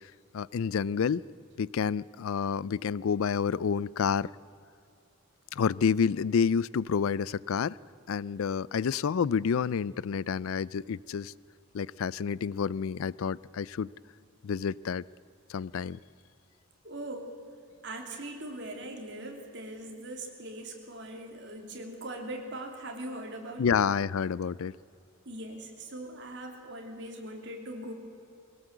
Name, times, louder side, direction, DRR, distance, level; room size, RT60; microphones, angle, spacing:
voice 1, 0.3-1.2 1.6-4.3 5.5-7.8 8.1-11.3 11.7-13.9 14.4-15.0 15.5-16.0 23.6-24.7, left 6 dB, 75° left, 22 dB, 0.4 m, -29 dB
voice 2, 16.8-17.3 17.8-23.8 25.2-27.9, right 1 dB, 55° right, 2 dB, 3.0 m, -40 dB
21.5 x 17.5 x 8.0 m, 2.6 s
head